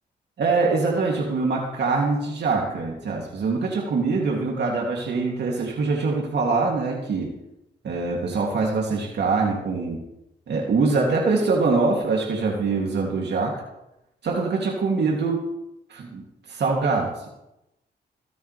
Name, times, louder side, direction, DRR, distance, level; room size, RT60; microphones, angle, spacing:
voice 1, 0.4-7.3 7.8-10.0 10.5-13.6 14.2-15.5 15.9-17.3, right 4 dB, 70° right, -1 dB, 2.9 m, -24 dB
25.5 x 9.2 x 3.5 m, 0.89 s
cardioid pair, 60°, 18 cm